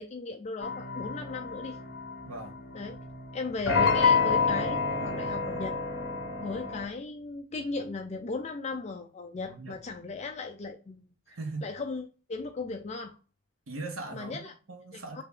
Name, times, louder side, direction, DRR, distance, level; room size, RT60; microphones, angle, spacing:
voice 1, 0.0-1.8 2.7-3.0 3.3-5.8 6.4-11.1 11.6-13.2 14.1-14.5 14.9-15.2, left 3 dB, 30° left, 0.3 m, -37 dB
sound 1, 0.6-6.8, left 5 dB, 55° left, 0.9 m, -29 dB
voice 2, 2.2-2.6 9.5-9.8 11.3-11.7 13.7-14.4 14.7-15.2, right 3 dB, 90° right, 1.0 m, -39 dB
2.9 x 2.9 x 3.6 m
head